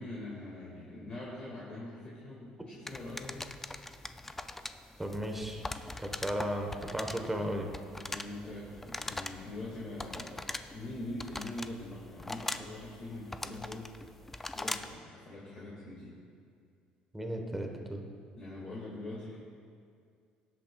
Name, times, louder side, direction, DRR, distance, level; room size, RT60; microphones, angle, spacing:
voice 1, 0.0-3.5 8.1-14.0 14.5-16.2 18.4-19.4, left 1 dB, 35° left, -6 dB, 1.9 m, -43 dB
sound 1, 2.9-15.0, left 2 dB, 10° left, 0.3 m, -42 dB
voice 2, 5.0-5.6 6.0-7.7 17.1-18.0, equal, 5° right, 3 dB, 1.1 m, -35 dB
18.5 x 8.3 x 2.3 m, 2.3 s
cardioid pair, 130°, 3 cm